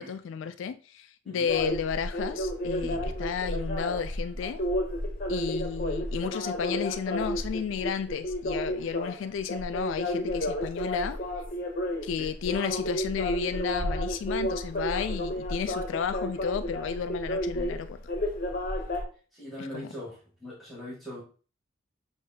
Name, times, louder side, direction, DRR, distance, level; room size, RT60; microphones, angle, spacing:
voice 1, 0.0-4.6 5.3-11.2 12.0-18.0 19.6-19.9, left 7 dB, 70° left, 0.3 m, -32 dB
sound 1, 1.5-19.0, left 1 dB, 45° left, 0.8 m, -31 dB
voice 2, 2.8-3.2 12.2-12.3 19.3-21.2, left 1 dB, ahead, 1.5 m, -41 dB
6.5 x 2.7 x 2.7 m
head